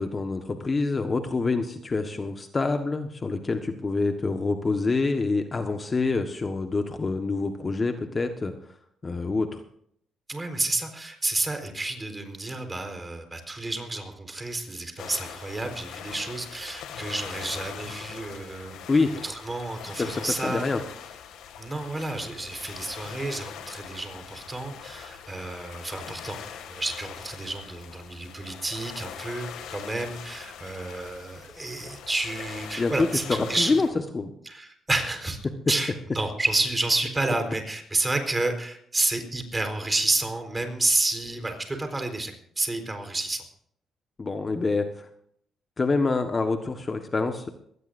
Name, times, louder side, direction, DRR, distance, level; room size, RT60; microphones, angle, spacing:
voice 1, 0.0-8.5 9.0-9.6 18.9-19.1 20.0-20.8 32.8-33.9 34.1-34.3 44.2-45.1 45.8-47.5, left 3 dB, 30° left, 6 dB, 1.4 m, -26 dB
voice 2, 10.3-18.7 19.2-20.6 21.6-26.4 26.7-33.8 34.5-35.4 35.7-43.4, right 2 dB, 20° right, 5 dB, 4.3 m, -30 dB
sound 1, 15.0-33.9, left 8 dB, 85° left, 2.2 m, -42 dB
22.5 x 18.0 x 2.7 m, 0.67 s
cardioid pair, 90°, 0 cm